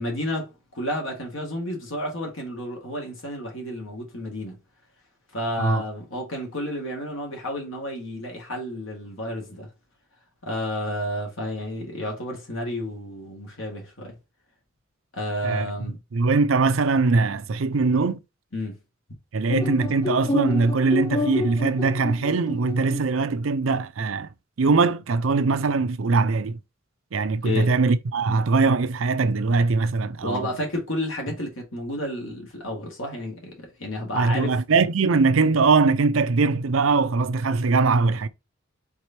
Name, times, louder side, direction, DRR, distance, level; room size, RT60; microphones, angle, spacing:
voice 1, 0.0-4.6 5.3-9.7 10.4-14.2 15.1-16.0 18.5-18.8 27.4-27.7 30.2-34.6, left 1 dB, 70° left, 2.0 m, -31 dB
voice 2, 16.1-18.2 19.3-24.3 24.6-26.6 27.1-30.5 34.1-38.3, right 4 dB, 75° right, 0.6 m, -21 dB
sound 1, 19.5-23.2, left 2 dB, 20° left, 0.4 m, -28 dB
4.7 x 4.1 x 2.8 m
head